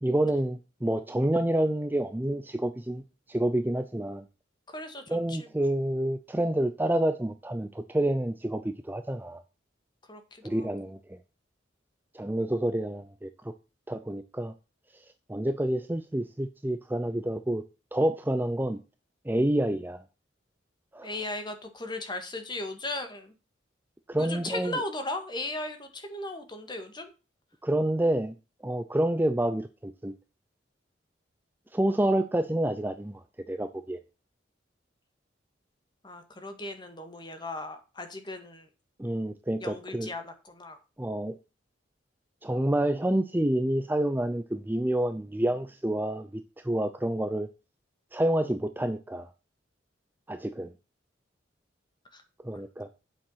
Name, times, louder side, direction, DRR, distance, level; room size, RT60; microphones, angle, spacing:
voice 1, 0.0-3.0 3.3-4.2 5.1-9.4 10.4-11.2 12.1-13.5 13.9-14.5 15.3-17.6 17.9-18.8 19.2-20.0 20.9-21.1 24.1-24.8 27.6-28.3 28.6-30.1 31.7-34.0 39.0-40.1 41.0-41.4 42.4-46.3 46.6-47.5 48.1-49.3 50.3-50.7 52.4-52.9, right 1 dB, 10° right, 0.5 m, -28 dB
voice 2, 4.7-5.4 10.1-10.7 21.0-23.3 24.2-27.1 36.0-38.7 39.6-40.8 52.1-52.2, left 2 dB, 25° left, 1.9 m, -37 dB
8.9 x 7.2 x 5.7 m
head